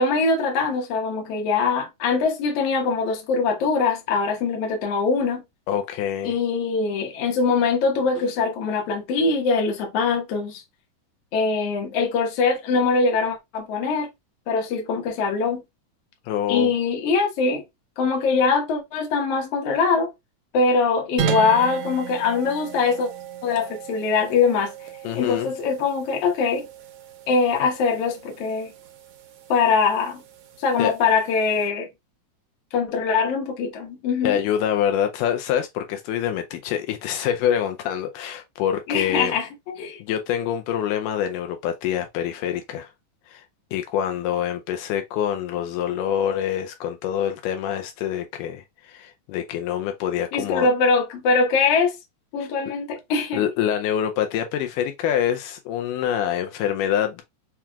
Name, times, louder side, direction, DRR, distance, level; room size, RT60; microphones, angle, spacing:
voice 1, 0.0-5.4 6.2-10.6 11.3-14.1 14.5-15.6 16.5-17.6 18.0-20.1 20.5-23.1 23.4-24.7 25.1-26.7 27.3-28.7 29.5-30.2 30.6-31.9 32.7-34.4 38.9-40.0 50.3-51.9 52.3-53.4, left 4 dB, 65° left, 1.7 m, -22 dB
voice 2, 5.7-6.4 16.3-16.7 25.0-25.5 30.8-30.9 34.2-39.4 40.0-42.9 43.3-43.4 43.7-50.7 52.4-52.5 53.3-57.2, left 9 dB, 85° left, 2.0 m, -25 dB
sound 1, 21.2-31.7, right 9 dB, 85° right, 1.4 m, -35 dB
5.8 x 2.3 x 2.3 m
omnidirectional pair, 3.7 m